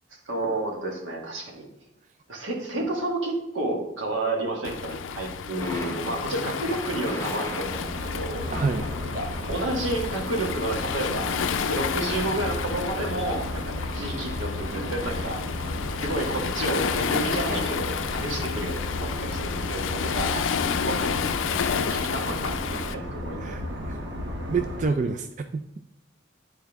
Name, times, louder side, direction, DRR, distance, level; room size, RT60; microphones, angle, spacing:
voice 1, 0.2-1.7 2.3-8.4 9.1-15.4 16.0-20.3 20.8-21.3 21.7-23.4, right 2 dB, 85° right, 0 dB, 1.6 m, -30 dB
Waves surf, 4.6-22.9, left 7 dB, 85° left, 0.4 m, -31 dB
Thunder, 5.6-23.1, left 1 dB, 15° left, 1.0 m, -43 dB
Airbus in flight, 7.5-24.8, left 1 dB, 65° right, 1.2 m, -34 dB
voice 2, 8.5-8.9 20.3-20.4 23.4-24.0 24.5-25.6, right 4 dB, 40° right, 7 dB, 0.3 m, -28 dB
10.0 x 4.5 x 3.5 m, 0.88 s
head